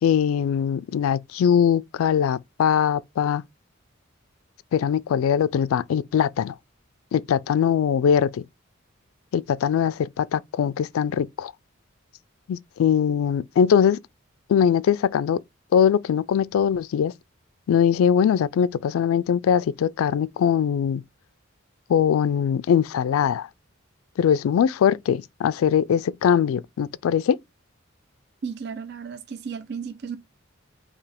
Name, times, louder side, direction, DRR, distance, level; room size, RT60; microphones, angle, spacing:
voice 1, 0.0-3.4 4.7-6.5 7.1-8.4 9.3-11.5 12.5-14.0 14.5-15.4 15.7-17.1 17.7-21.0 21.9-23.5 24.2-27.4, left 8 dB, 90° left, 0.3 m, -21 dB
voice 2, 28.4-30.2, right 6 dB, 50° right, 0.4 m, -34 dB
4.6 x 2.8 x 3.4 m
head